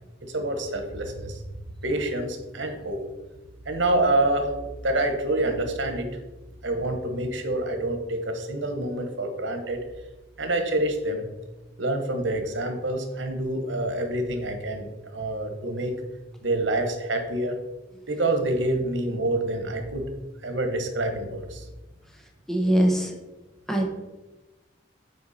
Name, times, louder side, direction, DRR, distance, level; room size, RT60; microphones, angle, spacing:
voice 1, 0.2-1.4 1.8-3.0 3.6-4.5 4.8-6.1 6.6-9.8 10.4-11.3 11.8-15.9 16.4-17.6 18.1-20.1 20.4-21.7, right 1 dB, 90° right, 6 dB, 1.2 m, -27 dB
voice 2, 22.5-23.1 23.7-24.0, right 1 dB, ahead, 1 dB, 1.0 m, -22 dB
7.9 x 4.6 x 4.2 m, 1.1 s
head